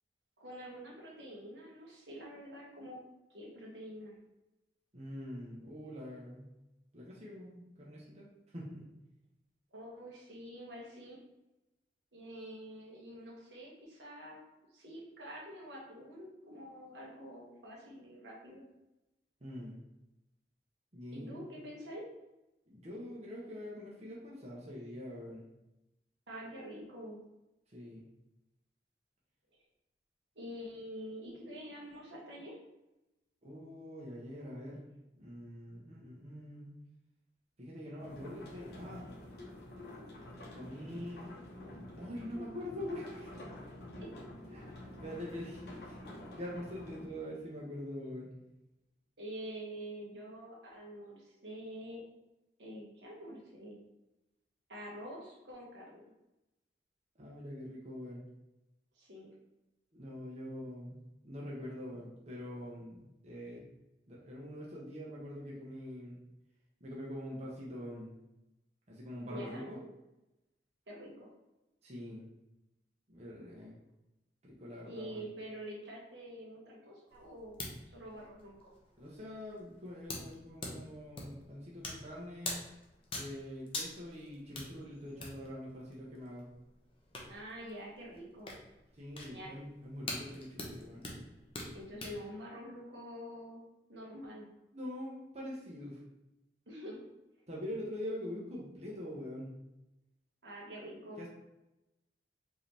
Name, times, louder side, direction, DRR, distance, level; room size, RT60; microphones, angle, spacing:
voice 1, 0.4-3.0 3.3-4.1 9.7-11.2 12.1-14.4 14.7-18.6 21.1-22.0 26.3-27.2 30.3-32.5 44.0-44.1 49.2-52.0 52.6-53.8 54.7-56.0 58.9-59.3 69.3-69.7 70.9-71.3 74.9-77.6 77.9-78.7 87.3-88.6 89.3-89.5 91.7-93.6 93.9-94.5 96.7-97.0 100.4-101.2, equal, 85° right, -4 dB, 1.5 m, -46 dB
voice 2, 4.9-6.5 6.9-8.3 8.5-8.9 19.4-19.8 20.9-21.6 22.7-25.4 27.7-28.0 33.4-34.8 35.2-36.7 37.6-39.0 40.5-41.3 42.0-43.3 44.5-46.0 46.4-48.3 57.2-58.2 59.9-63.6 64.1-66.2 66.8-68.1 68.9-69.8 71.8-72.3 73.1-73.8 74.4-75.3 79.0-82.6 83.1-86.5 88.9-91.0 94.7-96.0 97.5-99.5 101.2-101.3, left 1 dB, 40° right, -5 dB, 1.0 m, -44 dB
sound 1, 38.0-47.1, left 1 dB, 65° left, 1.1 m, -48 dB
sound 2, 77.1-92.2, left 2 dB, 30° left, 0.9 m, -46 dB
5.0 x 3.0 x 3.4 m, 0.95 s
head